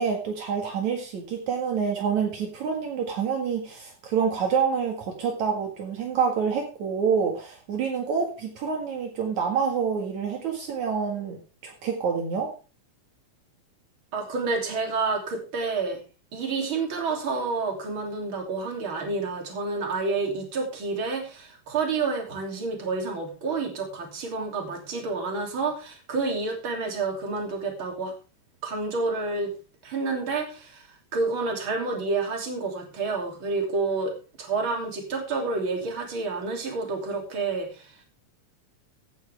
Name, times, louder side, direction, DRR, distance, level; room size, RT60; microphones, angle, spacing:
voice 1, 0.0-12.5, right 6 dB, 65° right, 1 dB, 3.2 m, -27 dB
voice 2, 14.1-16.0 16.3-28.1 28.6-29.5 29.8-38.0, right 3 dB, 40° right, 2 dB, 3.5 m, -29 dB
15.5 x 10.5 x 3.5 m, 0.34 s
omnidirectional pair, 3.6 m